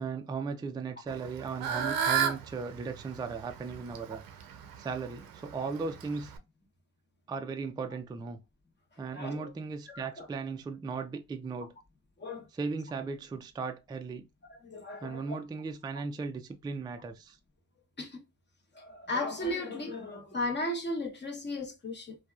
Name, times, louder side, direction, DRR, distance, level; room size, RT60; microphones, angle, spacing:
voice 1, 0.0-4.2 4.8-6.3 7.3-8.4 9.0-11.7 12.5-14.3 15.0-17.4, right 4 dB, 15° right, 0.3 m, -37 dB
Fowl / Bird, 1.1-6.4, right 7 dB, 80° right, 0.6 m, -34 dB
voice 2, 9.1-9.5 9.9-10.3 12.2-12.5 14.5-15.4 18.0-18.2 18.7-22.2, left 1 dB, 30° left, 0.9 m, -36 dB
2.8 x 2.3 x 2.3 m
supercardioid pair, 70°, 35 cm